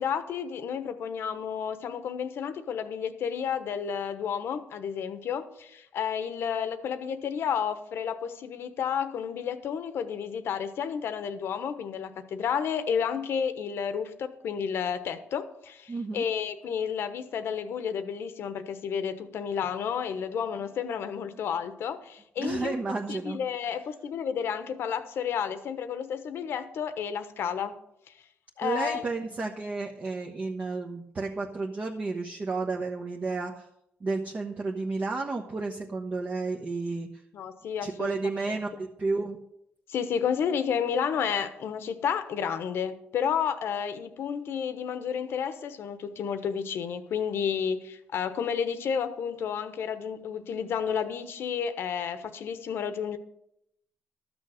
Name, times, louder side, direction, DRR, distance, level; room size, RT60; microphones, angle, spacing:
voice 1, 0.0-22.7 23.1-27.7 28.1-28.2 28.6-29.0 37.3-38.2 39.9-53.2, left 7 dB, 70° left, 10 dB, 1.1 m, -31 dB
voice 2, 15.9-16.3 22.4-23.4 28.6-33.7 34.0-37.2 37.8-39.4, right 3 dB, 35° right, 1 dB, 1.1 m, -32 dB
13.0 x 6.3 x 6.5 m, 0.78 s
cardioid pair, 105°, 4 cm